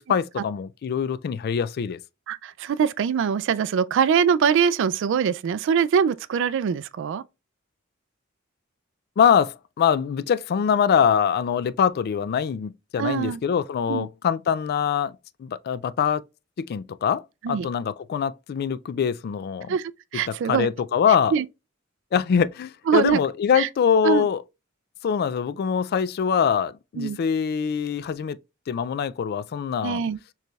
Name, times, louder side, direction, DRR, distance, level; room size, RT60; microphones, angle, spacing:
voice 1, 0.0-2.0 9.2-15.1 15.4-16.2 16.6-19.8 20.5-21.3 22.1-24.4 25.0-28.4 28.7-30.0, left 7 dB, 50° left, 0.3 m, -23 dB
voice 2, 2.3-7.2 13.0-13.4 13.9-14.1 17.4-17.7 19.7-20.7 21.3-21.5 22.9-23.2 23.6-23.7 24.0-24.3 27.0-27.2 29.8-30.2, right 7 dB, 60° right, 0.3 m, -23 dB
6.5 x 3.2 x 2.3 m
head